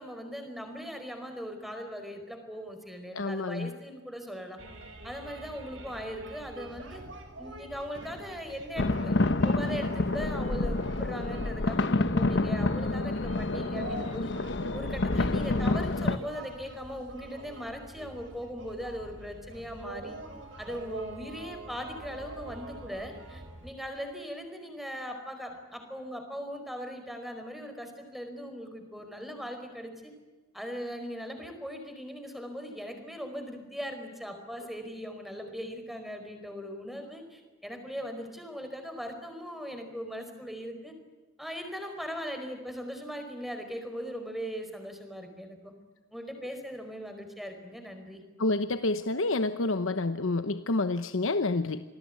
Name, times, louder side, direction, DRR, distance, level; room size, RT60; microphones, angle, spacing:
voice 1, 0.0-4.6 5.0-7.0 7.4-14.3 14.7-20.2 20.6-30.1 30.5-40.9 41.4-45.7 46.1-48.2, equal, ahead, 6 dB, 4.7 m, -39 dB
voice 2, 3.1-3.7 48.4-51.8, left 2 dB, 85° left, 10 dB, 1.0 m, -28 dB
sound 1, 4.6-23.7, right 2 dB, 75° right, 5.8 m, -45 dB
sound 2, 8.8-16.2, left 2 dB, 60° left, 1.0 m, -28 dB
28.0 x 19.5 x 9.5 m, 1.3 s
head